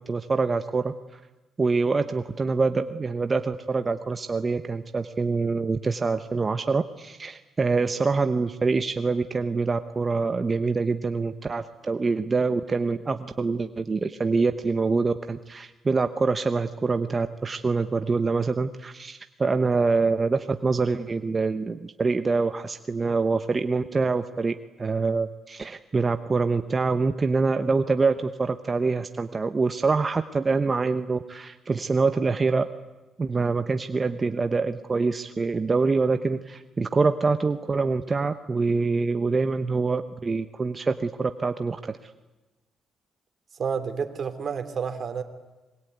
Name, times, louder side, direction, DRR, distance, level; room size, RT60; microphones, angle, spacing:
voice 1, 0.1-1.2 1.6-32.7 33.2-42.1, right 4 dB, 30° right, 1.0 m, -25 dB
voice 2, 43.6-45.2, right 6 dB, 50° right, 3.1 m, -29 dB
26.0 x 22.0 x 9.4 m
cardioid pair, 90°, 0 cm